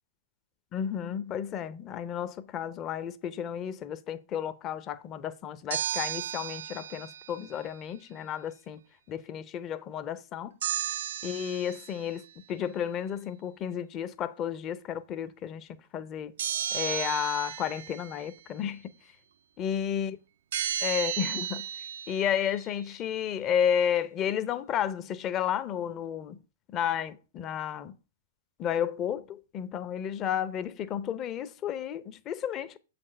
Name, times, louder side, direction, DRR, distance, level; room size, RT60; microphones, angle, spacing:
voice 1, 0.7-8.8 9.1-10.6 11.2-16.3 16.7-18.9 19.6-20.2 20.8-21.7 22.1-26.4 26.7-28.0 28.6-32.8, left 9 dB, 30° left, 0.6 m, -32 dB
sound 1, 5.7-7.4 10.6-12.1 16.4-18.3 20.5-22.7, right 10 dB, 60° right, 0.4 m, -34 dB
7.5 x 4.2 x 5.3 m
figure-of-eight pair, 110°, 0 cm